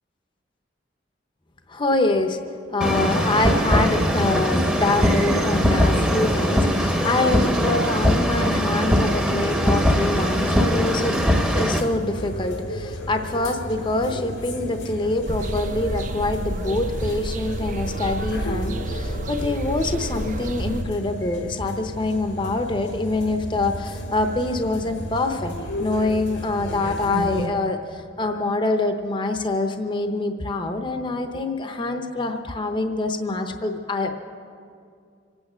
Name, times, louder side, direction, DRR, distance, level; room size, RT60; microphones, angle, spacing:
voice 1, 1.7-2.4 2.7-25.5 25.8-34.1, left 2 dB, 25° left, 6 dB, 0.7 m, -25 dB
sound 1, 2.8-11.8, equal, 5° right, 0.8 m, -21 dB
sound 2, 10.1-27.5, equal, 90° left, 1.7 m, -34 dB
sound 3, 15.3-20.8, right 2 dB, 45° right, 0.5 m, -30 dB
25.5 x 8.9 x 6.3 m, 2.3 s
head